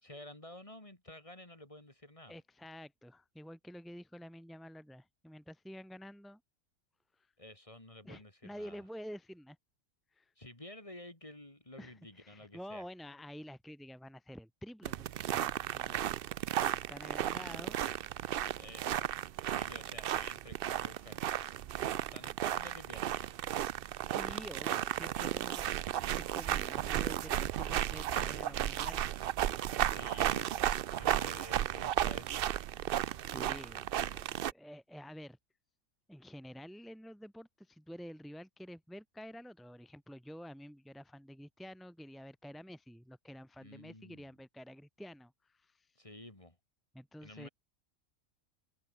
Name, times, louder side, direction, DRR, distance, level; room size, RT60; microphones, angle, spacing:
voice 1, 0.0-2.4 7.4-8.8 10.4-12.9 18.6-19.2 19.5-21.2 22.1-23.5 29.8-32.4 43.6-44.3 46.0-46.6 47.2-47.5, left 1 dB, 25° left, 2.9 m, -51 dB
voice 2, 2.3-6.4 7.2-7.3 8.0-9.6 10.1-10.3 11.8-16.2 16.6-17.8 18.1-18.6 24.1-25.7 26.1-29.2 33.3-35.4 36.1-45.9 46.9-47.5, equal, ahead, 1.9 m, -49 dB
sound 1, 14.8-34.5, right 11 dB, 60° right, 0.6 m, -34 dB
omnidirectional pair, 1.4 m